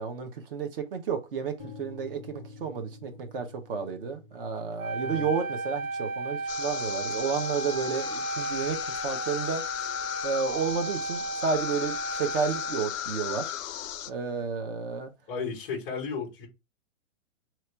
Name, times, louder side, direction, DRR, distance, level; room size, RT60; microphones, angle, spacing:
voice 1, 0.0-1.5 1.8-8.8 9.0-9.6 10.2-13.5 14.1-15.1, right 6 dB, 45° right, 0.9 m, -31 dB
sound 1, 1.6-9.5, left 3 dB, 10° right, 1.1 m, -51 dB
Wind instrument woodwind instrument, 4.8-13.0, right 2 dB, 75° right, 1.2 m, -34 dB
voice 2, 5.0-5.4 15.3-16.5, left 5 dB, 10° left, 0.4 m, -34 dB
sound 2, 6.5-14.1, left 11 dB, 75° left, 0.5 m, -36 dB
3.0 x 3.0 x 4.5 m
hypercardioid pair, 160°, 40 cm